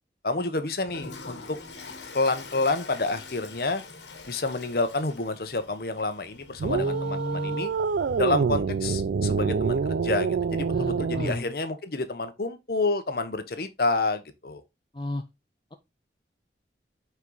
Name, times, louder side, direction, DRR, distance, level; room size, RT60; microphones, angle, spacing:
voice 1, 0.2-1.6 2.1-3.8 4.3-7.7 8.2-14.6, left 3 dB, 55° left, 0.9 m, -29 dB
Toilet flush, 0.8-8.3, left 4 dB, 80° left, 1.4 m, -45 dB
voice 2, 6.6-7.7 10.7-11.5 14.9-15.2, left 1 dB, 25° left, 0.5 m, -33 dB
sound 1, 6.6-11.4, right 5 dB, 75° right, 0.4 m, -26 dB
6.0 x 4.6 x 3.8 m
head